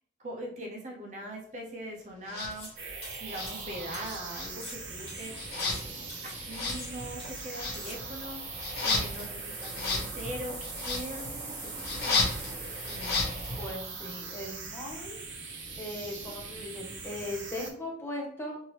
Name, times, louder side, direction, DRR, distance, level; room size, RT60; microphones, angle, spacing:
voice 1, 0.2-8.4 8.8-12.5 12.9-13.4, equal, 40° right, 0 dB, 0.6 m, -42 dB
sound 1, 2.3-2.5 3.3-4.0 4.3-13.7, left 3 dB, 55° left, 0.9 m, -34 dB
sound 2, 2.5-2.8 3.0-4.2 4.5-5.8 6.1-6.4 6.7-7.4 7.7-8.0, left 2 dB, 30° left, 1.3 m, -46 dB
sound 3, 2.8-17.7, right 4 dB, 85° right, 0.8 m, -41 dB
voice 2, 13.6-15.2 15.8-18.6, left 1 dB, 15° left, -2 dB, 0.7 m, -38 dB
3.2 x 2.6 x 2.9 m, 0.63 s
head